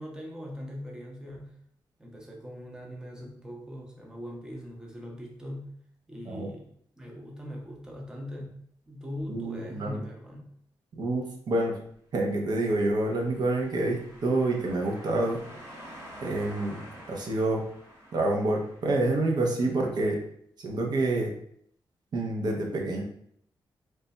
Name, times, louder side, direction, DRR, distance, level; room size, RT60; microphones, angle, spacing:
voice 1, 0.0-1.6 2.0-5.8 6.1-8.6 8.9-10.5, equal, 10° right, -1 dB, 0.6 m, -41 dB
voice 2, 9.3-10.0 11.0-11.7 12.1-15.4 16.2-16.8 17.1-17.6 18.1-20.2 20.6-21.3 22.1-23.0, right 2 dB, 55° right, 0 dB, 0.6 m, -27 dB
sound 1, 12.5-19.3, equal, 30° right, 1.0 m, -48 dB
3.3 x 2.2 x 3.9 m, 0.67 s
wide cardioid pair, 130°, 8 cm